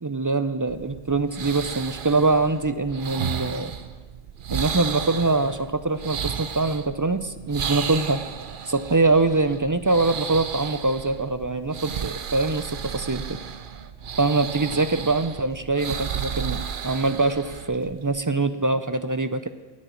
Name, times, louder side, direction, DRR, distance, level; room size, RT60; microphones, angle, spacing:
voice 1, 0.0-3.7 4.5-5.6 5.8-8.2 8.7-13.4 14.2-19.5, right 3 dB, 30° right, 12 dB, 0.4 m, -23 dB
sound 1, 0.7-18.2, right 7 dB, 60° right, 0.8 m, -34 dB
10.0 x 9.5 x 9.3 m, 1.3 s
omnidirectional pair, 1.0 m